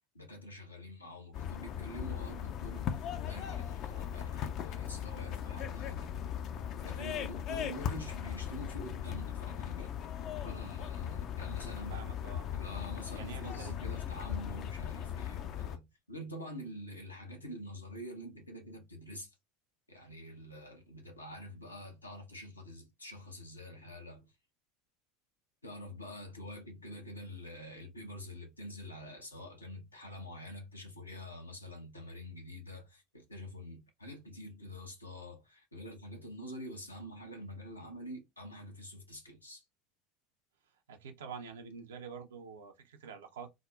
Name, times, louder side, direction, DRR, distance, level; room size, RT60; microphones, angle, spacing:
voice 1, 0.1-6.4 6.8-10.1 10.4-12.1 12.5-19.3 19.9-24.3 25.6-39.6, left 1 dB, 85° left, 0.7 m, -46 dB
sound 1, 1.3-15.8, left 9 dB, 45° left, 0.4 m, -38 dB
voice 2, 11.7-12.5 12.7-13.7 40.9-43.5, right 6 dB, 70° right, 0.5 m, -47 dB
3.6 x 2.0 x 2.3 m
figure-of-eight pair, 75°, 0 cm